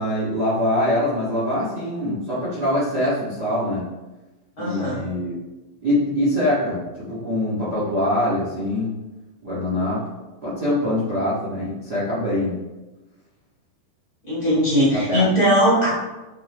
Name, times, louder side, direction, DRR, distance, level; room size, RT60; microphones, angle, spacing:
voice 1, 0.0-3.8 4.6-5.4 5.8-8.9 9.4-10.0 10.4-12.5 14.9-15.2, left 1 dB, 70° right, -9 dB, 0.9 m, -23 dB
voice 2, 4.6-5.0 14.2-15.9, equal, 30° left, -8 dB, 2.1 m, -19 dB
7.2 x 7.1 x 3.0 m, 1.1 s
omnidirectional pair, 5.0 m